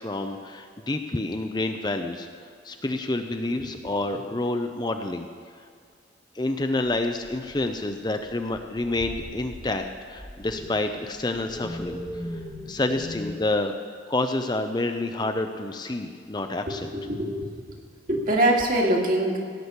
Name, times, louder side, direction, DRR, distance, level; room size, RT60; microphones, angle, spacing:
voice 1, 0.0-2.3 2.6-5.3 6.3-9.8 10.1-12.0 12.3-12.4 12.7-13.7 14.1-16.9, left 2 dB, 25° left, 6 dB, 0.6 m, -28 dB
sound 1, 7.2-7.9 8.2-13.3, equal, ahead, 1.4 m, -39 dB
voice 2, 16.7-17.5 18.1-19.4, right 1 dB, 45° right, 0 dB, 2.1 m, -23 dB
17.0 x 6.2 x 8.2 m, 2.2 s
head